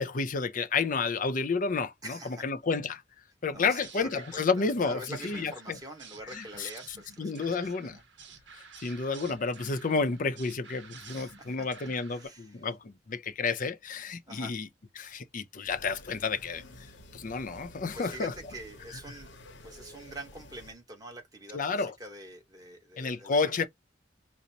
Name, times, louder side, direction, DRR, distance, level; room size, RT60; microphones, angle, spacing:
voice 1, 0.0-3.0 3.4-5.8 6.3-6.7 7.2-8.0 8.6-14.7 15.0-16.6 17.1-18.3 21.5-21.9 23.0-23.7, left 4 dB, 45° left, 0.5 m, -31 dB
voice 2, 2.0-2.4 3.5-7.7 11.1-11.7 12.1-12.6 14.3-14.6 17.9-19.3 19.6-23.7, right 1 dB, 20° right, 1.2 m, -45 dB
sound 1, 3.5-12.3, right 5 dB, 70° right, 0.9 m, -51 dB
sound 2, 15.6-20.7, left 1 dB, 75° left, 0.9 m, -51 dB
5.1 x 2.0 x 2.8 m
head